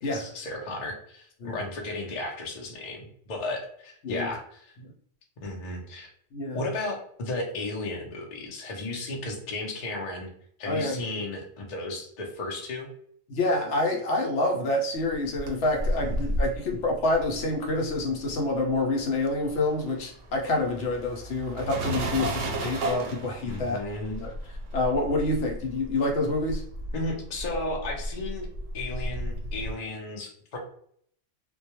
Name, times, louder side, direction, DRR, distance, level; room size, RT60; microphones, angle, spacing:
voice 1, 0.0-4.8 5.4-6.1 6.5-10.3 10.6-12.9 16.0-16.3 22.1-22.3 23.4-24.2 26.9-28.5 28.7-30.6, left 2 dB, 45° left, -1 dB, 0.6 m, -34 dB
voice 2, 10.6-11.0 13.3-23.8 24.2-24.3 24.7-26.6, left 2 dB, 70° left, 1 dB, 0.9 m, -27 dB
sound 1, 15.1-18.7 19.0-29.7, right 1 dB, 85° right, 0.9 m, -33 dB
2.2 x 2.2 x 2.8 m, 0.63 s
omnidirectional pair, 1.3 m